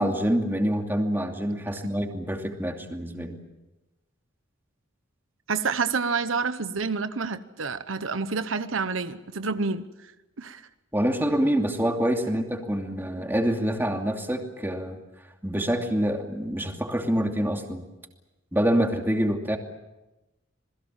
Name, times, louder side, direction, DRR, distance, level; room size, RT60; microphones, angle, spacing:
voice 1, 0.0-3.4 10.9-15.0 15.4-17.9 18.5-19.6, equal, 10° right, 3 dB, 2.7 m, -26 dB
voice 2, 5.5-9.9 10.4-10.6, right 4 dB, 85° right, 11 dB, 1.1 m, -28 dB
27.5 x 21.0 x 7.4 m, 1.0 s
head